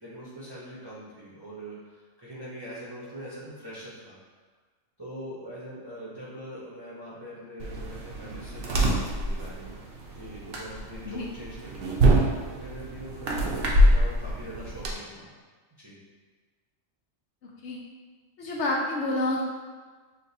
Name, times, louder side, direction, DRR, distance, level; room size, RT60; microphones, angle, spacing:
voice 1, 0.0-4.2 5.0-9.7 10.1-12.0 12.5-15.3 15.8-16.0, equal, 25° right, -9 dB, 0.6 m, -42 dB
sound 1, 7.6-14.9, right 1 dB, 60° right, 0.8 m, -25 dB
voice 2, 17.4-17.8 18.4-19.4, left 2 dB, 65° left, -2 dB, 0.8 m, -29 dB
6.5 x 2.3 x 2.6 m, 1.4 s
omnidirectional pair, 1.4 m